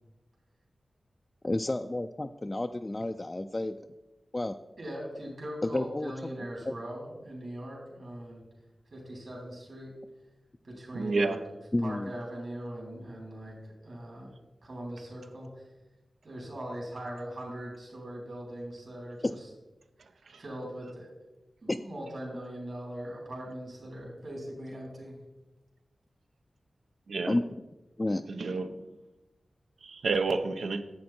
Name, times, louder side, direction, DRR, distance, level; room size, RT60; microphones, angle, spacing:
voice 1, 1.4-3.8 4.3-4.6 5.6-6.3 6.7-6.8 11.7-12.1 19.2-19.3 21.7-21.8 27.3-27.4 28.0-28.2, left 2 dB, 25° left, 6 dB, 0.3 m, -30 dB
voice 2, 4.8-8.4 8.9-9.9 10.6-11.4 11.8-14.3 14.6-15.6 16.2-19.5 20.4-21.1 21.6-25.2, right 1 dB, 60° right, -2 dB, 3.6 m, -40 dB
voice 3, 10.9-11.4 27.1-27.3 28.3-28.9 29.8-30.8, right 3 dB, 90° right, 8 dB, 0.7 m, -29 dB
10.5 x 7.6 x 4.3 m, 1.1 s
wide cardioid pair, 80°, 0 cm